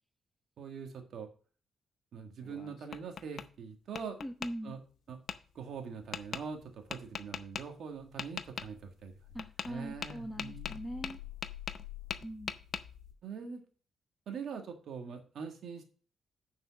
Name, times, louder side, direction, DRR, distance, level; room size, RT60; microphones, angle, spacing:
voice 1, 0.6-1.3 2.1-4.2 4.6-4.8 5.1-5.2 5.5-9.1 9.7-10.7 13.2-13.6 14.3-15.8, right 6 dB, 70° right, 5 dB, 1.7 m, -43 dB
Tap, 2.4-3.5 3.9-4.5 5.3-5.4 6.1-6.4 6.9-7.6 8.2-8.7 9.4-9.7 10.0-11.8 12.1-12.8, left 7 dB, 60° left, 0.6 m, -39 dB
voice 2, 4.2-4.8 9.3-11.2 12.2-12.5, equal, ahead, 5 dB, 1.1 m, -41 dB
sound 1, 5.5-7.1 7.5-7.6 7.9-13.1, left 14 dB, 80° left, 2.0 m, -50 dB
6.3 x 5.4 x 6.9 m, 0.39 s
cardioid pair, 80°, 0 cm